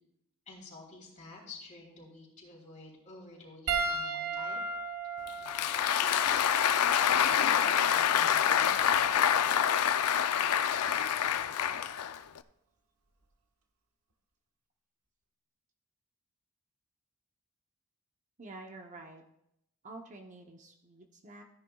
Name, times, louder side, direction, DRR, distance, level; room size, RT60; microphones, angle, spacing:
voice 1, 0.5-4.6 5.4-9.0, left 3 dB, 35° left, -2 dB, 3.8 m, -50 dB
Piano, 3.7-8.3 9.3-9.5 11.4-11.5, right 4 dB, 70° right, 1.3 m, -37 dB
Applause, 5.3-12.4, left 9 dB, 85° left, 0.5 m, -26 dB
voice 2, 18.4-19.2 19.8-21.4, right 2 dB, 35° right, 3 dB, 0.8 m, -48 dB
15.0 x 10.0 x 2.3 m, 0.79 s
head